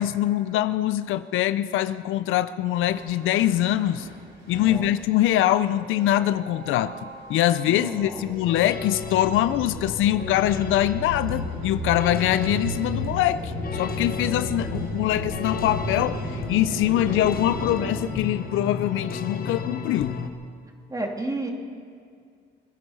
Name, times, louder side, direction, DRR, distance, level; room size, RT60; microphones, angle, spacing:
voice 1, 0.0-4.1 4.5-6.9 7.3-20.1, left 13 dB, 85° left, 13 dB, 0.5 m, -23 dB
sound 1, 2.7-17.9, equal, 90° right, 5.6 m, -35 dB
voice 2, 7.7-8.2 20.9-21.5, right 2 dB, 15° right, 2 dB, 2.6 m, -31 dB
sound 2, 8.4-20.3, left 6 dB, 50° left, 1.2 m, -34 dB
24.0 x 10.0 x 5.6 m, 2.2 s
cardioid pair, 90°, 20 cm